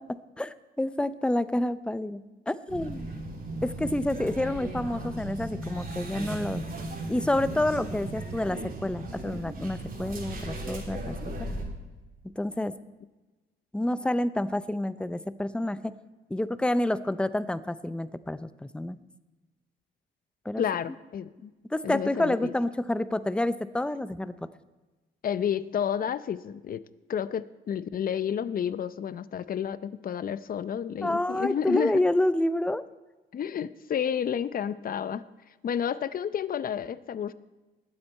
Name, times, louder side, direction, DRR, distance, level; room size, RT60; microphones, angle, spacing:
voice 1, 0.0-3.1 3.6-6.6 7.1-11.2 12.4-12.8 13.7-15.9 16.3-19.0 20.5-20.6 21.7-24.5 31.0-32.8, left 1 dB, 5° left, 14 dB, 0.5 m, -28 dB
sound 1, 2.7-11.6, right 2 dB, 45° right, 3.1 m, -36 dB
voice 2, 20.6-21.5 21.8-22.5 25.2-26.8 27.1-32.0 33.3-35.2 35.6-37.3, left 8 dB, 45° left, 15 dB, 0.6 m, -30 dB
21.0 x 7.9 x 4.2 m, 1.2 s
cardioid pair, 90°, 20 cm